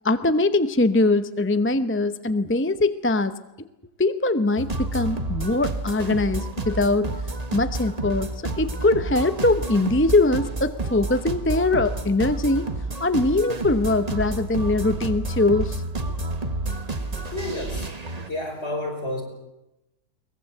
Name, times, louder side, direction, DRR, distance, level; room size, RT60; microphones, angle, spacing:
voice 1, 0.0-3.3 4.0-7.1 7.5-8.3 8.6-12.7 13.0-15.8, left 2 dB, 15° left, 10 dB, 0.5 m, -22 dB
sound 1, 4.6-18.3, right 2 dB, 25° right, 1.4 m, -30 dB
voice 2, 17.3-19.2, left 1 dB, 40° left, 3 dB, 6.0 m, -31 dB
22.5 x 21.0 x 7.9 m, 0.94 s
omnidirectional pair, 1.8 m